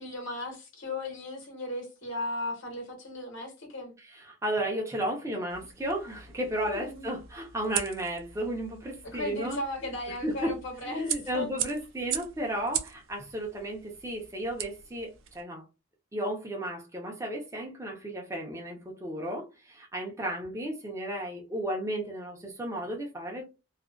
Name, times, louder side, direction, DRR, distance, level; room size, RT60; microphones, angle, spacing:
voice 1, 0.0-3.9 6.6-7.2 9.0-11.5, left 2 dB, 65° left, 1.1 m, -36 dB
voice 2, 4.0-9.6 10.2-10.5 10.8-15.6 16.1-23.5, right 1 dB, 15° right, 0.6 m, -34 dB
sound 1, 5.5-15.4, right 10 dB, 70° right, 0.4 m, -40 dB
2.5 x 2.3 x 2.2 m
head